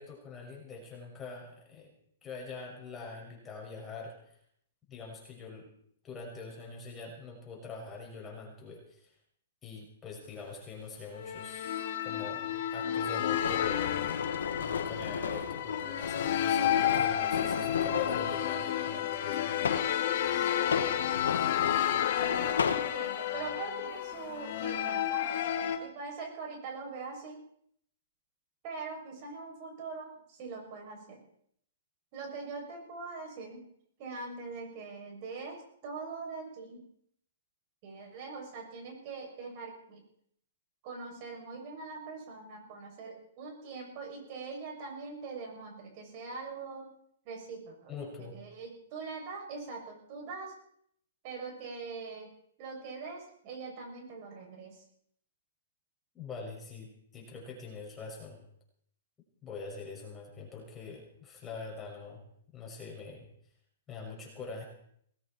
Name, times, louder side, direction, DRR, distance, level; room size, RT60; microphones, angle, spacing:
voice 1, 0.0-1.9 2.2-4.4 4.9-5.7 6.0-9.1 9.6-11.8 12.0-13.8 14.6-19.8 47.9-48.4 56.1-58.4 59.4-62.2 62.5-63.3 63.9-64.6, left 4 dB, 15° left, -1 dB, 6.2 m, -44 dB
sound 1, 11.2-25.8, left 10 dB, 55° left, 2.5 m, -31 dB
sound 2, 13.3-18.3 19.1-20.0 20.6-22.9, left 6 dB, 80° left, 1.9 m, -34 dB
voice 2, 22.7-25.2 25.8-27.4 28.6-31.2 32.1-33.6 34.0-36.8 37.8-40.0 40.8-46.9 47.3-47.9 48.2-50.5 51.2-52.3 52.6-54.8, right 4 dB, 40° right, 0 dB, 7.3 m, -42 dB
19.0 x 16.5 x 4.5 m, 0.68 s
hypercardioid pair, 135°, 0 cm